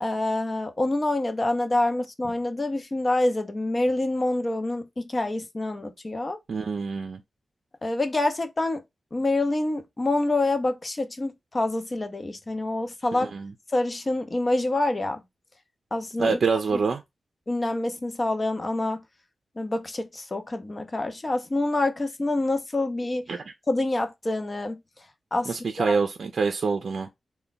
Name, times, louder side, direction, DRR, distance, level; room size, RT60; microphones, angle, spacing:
voice 1, 0.0-6.4 7.8-8.8 9.1-13.3 13.7-15.2 15.9-16.4 16.7-16.8 17.5-19.0 19.6-23.3 23.7-24.8 25.3-26.0, left 2 dB, 30° left, 0.6 m, -26 dB
voice 2, 6.5-7.2 13.3-13.5 16.2-17.0 23.3-23.4 25.5-27.1, right 4 dB, 65° right, 0.5 m, -25 dB
3.4 x 2.2 x 3.9 m
wide cardioid pair, 115°, 0 cm